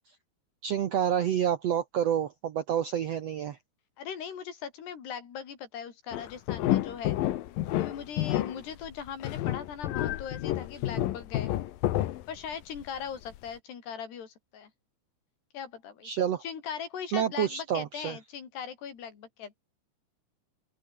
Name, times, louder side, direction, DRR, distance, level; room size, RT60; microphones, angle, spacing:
voice 1, 0.6-3.6 16.0-16.4 17.1-18.2, right 9 dB, 80° right, 1.4 m, -28 dB
voice 2, 4.0-7.2 7.8-11.5 12.3-14.7 15.5-16.1 16.4-19.6, left 7 dB, 85° left, 5.8 m, -40 dB
sound 1, 6.1-12.8 13.3-13.4, left 14 dB, 70° left, 2.6 m, -29 dB
open air
omnidirectional pair, 4.6 m